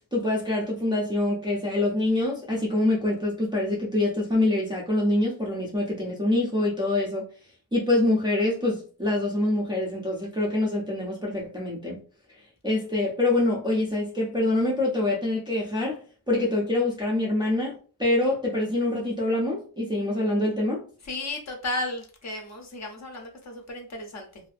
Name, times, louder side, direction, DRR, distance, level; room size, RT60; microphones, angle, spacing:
voice 1, 0.1-7.3 7.7-12.0 12.6-16.0 16.3-20.8, left 2 dB, 10° right, 0.4 m, -25 dB
voice 2, 21.1-24.4, left 2 dB, 35° left, 0.6 m, -34 dB
2.5 x 2.4 x 2.4 m
cardioid pair, 155°, 49 cm